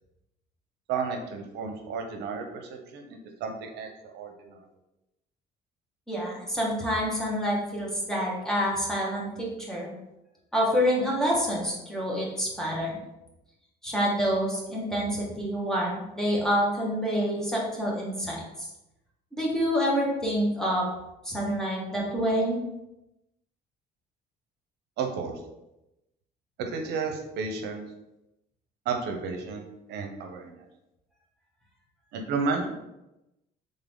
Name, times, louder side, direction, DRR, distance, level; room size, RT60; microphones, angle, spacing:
voice 1, 0.9-4.6 25.0-25.4 26.6-27.8 28.8-30.6 32.1-32.7, right 5 dB, 80° right, 4 dB, 0.7 m, -32 dB
voice 2, 6.1-9.9 10.5-13.0 13.8-18.7 19.3-20.8 21.2-22.6, equal, 5° left, -4 dB, 1.5 m, -27 dB
3.8 x 3.7 x 3.6 m, 0.92 s
cardioid pair, 110°, 17 cm